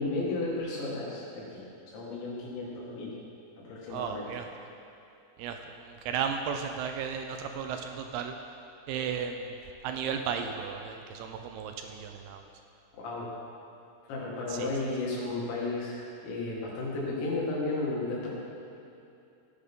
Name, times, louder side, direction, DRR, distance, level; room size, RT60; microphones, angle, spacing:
voice 1, 0.0-3.1 3.6-4.3 12.9-13.3 14.1-18.3, left 2 dB, 85° left, -5 dB, 4.4 m, -33 dB
voice 2, 3.9-4.5 5.4-8.3 8.9-9.5 9.8-12.5 14.5-14.7, right 7 dB, 80° right, 5 dB, 2.4 m, -34 dB
15.5 x 10.0 x 3.8 m, 2.7 s
omnidirectional pair, 5.0 m